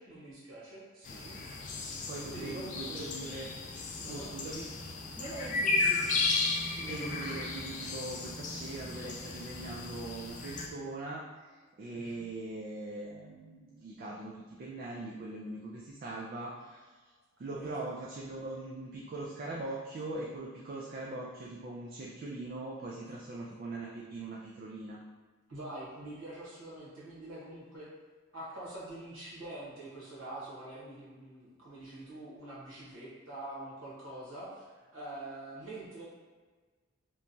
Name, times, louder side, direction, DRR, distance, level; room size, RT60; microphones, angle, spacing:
voice 1, 0.0-1.4 2.3-3.1 4.0-4.3 5.2-6.1 6.7-7.4 12.0-12.3 17.5-17.7 25.5-27.9 28.3-36.1, right 1 dB, 85° right, -7 dB, 1.0 m, -45 dB
sound 1, 1.0-10.7, left 3 dB, 40° left, 0.3 m, -34 dB
voice 2, 2.1-3.5 4.1-4.7 6.9-16.9 17.4-25.0, right 2 dB, 45° right, -4 dB, 0.3 m, -41 dB
3.0 x 2.2 x 2.6 m, 1.4 s
head